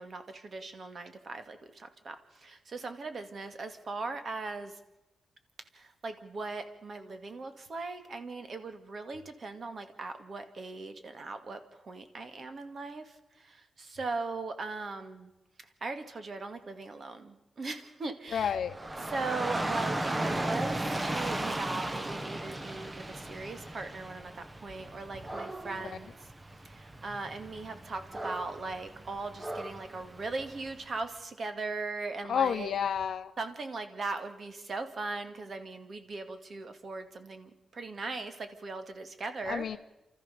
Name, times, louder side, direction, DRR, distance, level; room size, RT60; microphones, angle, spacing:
voice 1, 0.0-4.8 5.7-15.3 15.8-18.5 19.0-26.2 26.6-32.8 33.4-39.6, right 3 dB, 50° right, 8 dB, 2.2 m, -39 dB
voice 2, 18.3-18.7 32.3-33.3 39.5-39.8, left 8 dB, 80° left, 8 dB, 0.7 m, -30 dB
Dog / Rain, 18.7-30.8, right 1 dB, 20° right, 1.1 m, -36 dB
29.5 x 13.5 x 6.9 m, 0.96 s
cardioid pair, 95°, 0 cm